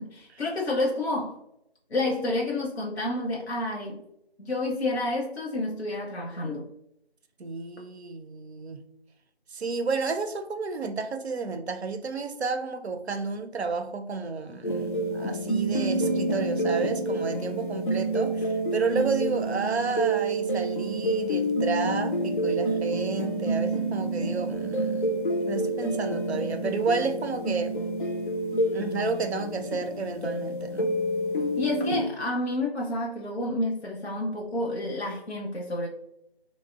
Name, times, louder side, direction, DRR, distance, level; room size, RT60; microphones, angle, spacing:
voice 1, 0.0-1.4 1.9-4.0 4.4-6.7 31.6-35.9, left 2 dB, 90° left, 0.7 m, -29 dB
voice 2, 7.4-8.8 9.5-25.1 25.4-27.8 28.7-30.9, right 4 dB, 90° right, 0.5 m, -31 dB
sound 1, 14.6-32.0, right 1 dB, 55° left, 0.4 m, -28 dB
3.9 x 2.0 x 2.3 m
figure-of-eight pair, 175°, 31 cm